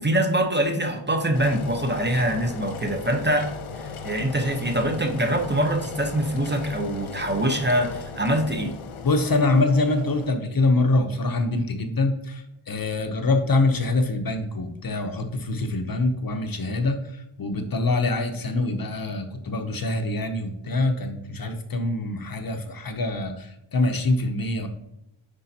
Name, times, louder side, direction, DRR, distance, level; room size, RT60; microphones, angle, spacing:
voice 1, 0.0-8.7, right 1 dB, 20° right, 4 dB, 0.9 m, -24 dB
Engine, 1.3-10.3, left 5 dB, 80° left, 0.9 m, -37 dB
voice 2, 9.0-24.7, left 2 dB, 45° left, 6 dB, 0.8 m, -24 dB
9.9 x 5.2 x 2.8 m, 0.83 s
wide cardioid pair, 100°, 50 cm